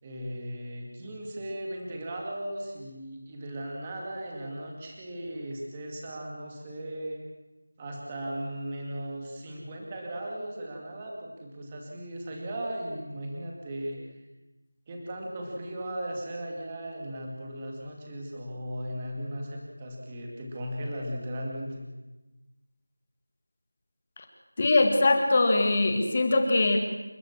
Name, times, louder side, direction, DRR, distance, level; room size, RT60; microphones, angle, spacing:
voice 1, 0.0-7.2 7.8-14.1 14.9-21.9, right 1 dB, 10° right, 0 dB, 2.2 m, -37 dB
voice 2, 24.6-26.8, left 2 dB, 15° left, 5 dB, 1.9 m, -22 dB
29.0 x 15.5 x 7.3 m, 1.1 s
figure-of-eight pair, 180°, 0 cm